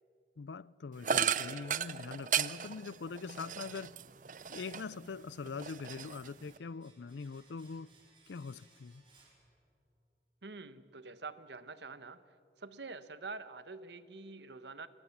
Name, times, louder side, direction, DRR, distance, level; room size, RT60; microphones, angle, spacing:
voice 1, 0.4-3.9 4.5-7.9 8.3-9.0, left 4 dB, 85° left, 0.5 m, -43 dB
sound 1, 1.0-5.0 5.4-6.6, right 8 dB, 45° right, 0.6 m, -35 dB
Domestic sounds home sounds, 6.2-10.1 10.3-10.5, right 3 dB, 30° right, 4.9 m, -66 dB
voice 2, 10.4-12.2 12.6-14.9, right 3 dB, 80° right, 1.2 m, -46 dB
28.5 x 22.5 x 7.3 m
head